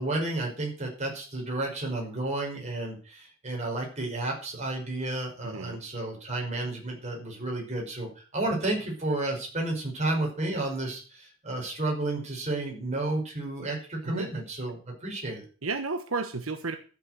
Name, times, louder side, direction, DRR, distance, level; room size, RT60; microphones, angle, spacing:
voice 1, 0.0-15.4, right 2 dB, 35° right, 0 dB, 5.4 m, -32 dB
voice 2, 5.4-5.8 14.0-14.3 15.6-16.8, right 3 dB, 85° right, 7 dB, 1.2 m, -32 dB
12.0 x 7.4 x 7.7 m, 0.39 s
head